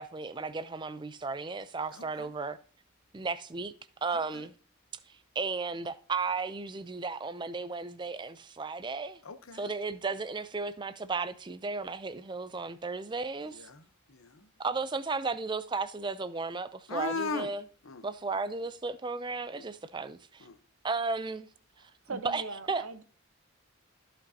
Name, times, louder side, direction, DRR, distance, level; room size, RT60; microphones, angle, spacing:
voice 1, 0.0-2.6 3.1-3.7 4.0-4.5 5.4-9.2 9.5-13.7 14.6-17.6 18.0-20.5 20.8-21.5 22.1-22.4 22.7-22.8, right 4 dB, 20° right, 0.4 m, -34 dB
voice 2, 1.9-2.3 4.3-4.4 9.2-9.7 13.5-14.5 16.9-17.5 17.8-18.0 19.5-19.6 20.4-20.6, left 4 dB, 75° left, 0.8 m, -38 dB
voice 3, 21.8-23.0, right 3 dB, 90° right, 0.8 m, -41 dB
14.0 x 5.3 x 2.7 m
head